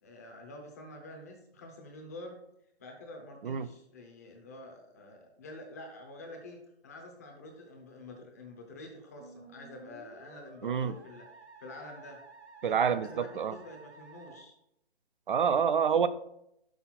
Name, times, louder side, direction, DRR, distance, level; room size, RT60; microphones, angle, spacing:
voice 1, 0.0-2.4 2.8-6.6 6.8-11.3 11.6-12.2 12.6-14.5, left 2 dB, 15° left, 2 dB, 0.7 m, -47 dB
Musical instrument, 9.2-14.4, right 4 dB, 85° right, 1.0 m, -53 dB
voice 2, 10.6-11.0 12.6-13.6 15.3-16.1, right 7 dB, 50° right, 13 dB, 0.5 m, -27 dB
6.1 x 5.3 x 4.2 m, 0.77 s
hypercardioid pair, 160°, 33 cm